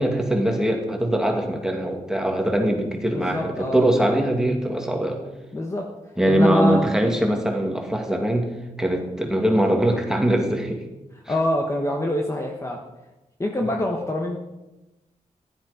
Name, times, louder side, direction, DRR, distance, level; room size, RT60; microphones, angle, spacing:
voice 1, 0.0-5.2 6.2-8.5 8.8-10.8, right 1 dB, 5° right, 2 dB, 2.2 m, -22 dB
voice 2, 3.0-3.9 5.5-5.9 6.2-6.9 11.3-12.8 13.4-14.4, left 1 dB, 20° left, 1 dB, 1.3 m, -25 dB
15.5 x 11.0 x 5.1 m, 1.0 s
wide cardioid pair, 145°, 13 cm